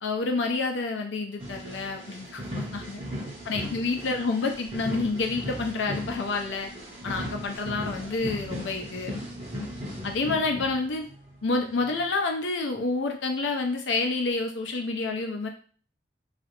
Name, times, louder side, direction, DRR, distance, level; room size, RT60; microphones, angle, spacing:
voice 1, 0.0-3.0 3.5-6.7 7.0-9.1 10.0-11.1 11.4-15.5, left 3 dB, 80° left, 3 dB, 0.5 m, -28 dB
sound 1, 1.4-11.3 11.8-12.0, equal, 30° right, 0.8 m, -37 dB
2.4 x 2.0 x 2.9 m, 0.42 s
head